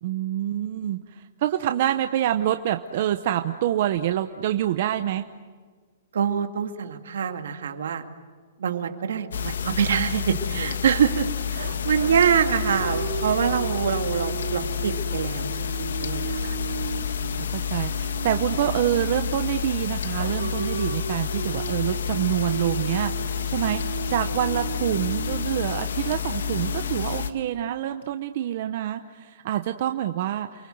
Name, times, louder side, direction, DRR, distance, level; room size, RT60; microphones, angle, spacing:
voice 1, 0.0-5.2 17.3-30.7, right 12 dB, 35° right, 8 dB, 0.8 m, -26 dB
voice 2, 6.1-8.0 8.6-16.6, right 7 dB, 70° right, 6 dB, 2.5 m, -25 dB
sound 1, 9.3-27.3, left 8 dB, 90° left, 1.5 m, -29 dB
sound 2, 11.5-19.6 20.2-28.2, right 7 dB, 85° right, 2.9 m, -36 dB
29.5 x 23.0 x 7.9 m, 1.5 s
hypercardioid pair, 180°, 0 cm